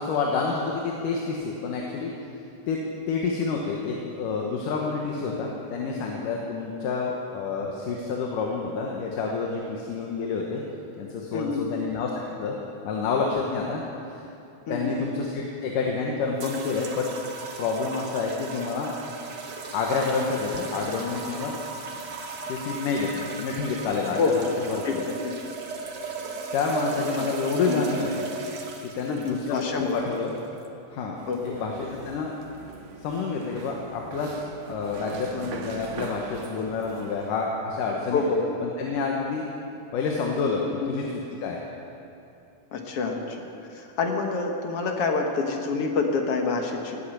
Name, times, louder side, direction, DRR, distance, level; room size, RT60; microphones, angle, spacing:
voice 1, 0.0-2.1 2.7-2.8 3.1-10.6 11.0-12.6 12.8-13.8 14.1-14.2 14.7-17.1 17.6-18.9 19.7-21.6 22.5-24.2 24.7-25.0 26.5-28.2 28.9-30.4 30.9-32.3 33.0-34.3 34.7-38.2 38.6-39.5 39.9-40.6 40.9-41.0 41.4-41.6, left 4 dB, 80° left, 0 dB, 2.8 m, -28 dB
voice 2, 11.3-11.6 14.7-15.0 24.2-24.5 24.8-25.2 27.1-27.3 27.7-27.8 29.1-30.0 31.3-31.6 38.1-38.5 40.6-40.9 42.7-46.9, left 4 dB, 55° left, 2 dB, 2.0 m, -27 dB
sound 1, 16.4-30.7, right 4 dB, 85° right, 0.9 m, -36 dB
sound 2, 31.2-37.3, right 5 dB, 65° right, 2.3 m, -42 dB
18.0 x 8.5 x 8.6 m, 2.8 s
omnidirectional pair, 3.7 m